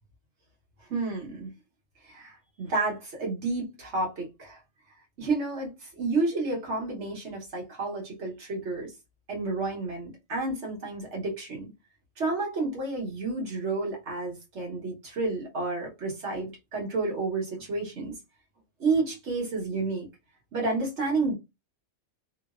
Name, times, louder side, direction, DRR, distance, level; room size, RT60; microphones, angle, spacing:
voice 1, 0.9-1.5 2.0-4.6 5.2-8.9 9.3-11.7 12.2-18.1 18.8-20.1 20.5-21.3, right 3 dB, 70° right, 1.3 m, -30 dB
2.7 x 2.0 x 2.3 m
omnidirectional pair, 1.3 m